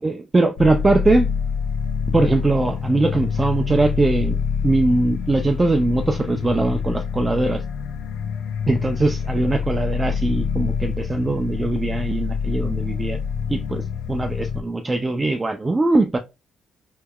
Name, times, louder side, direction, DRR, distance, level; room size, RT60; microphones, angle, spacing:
voice 1, 0.0-1.3 2.1-4.4 4.6-7.6 8.7-13.2 13.5-13.8 14.1-16.2, right 2 dB, 25° right, 0.4 m, -21 dB
sound 1, 0.6-14.6, left 6 dB, 75° left, 0.5 m, -26 dB
3.5 x 3.2 x 2.2 m
cardioid pair, 90°, 0 cm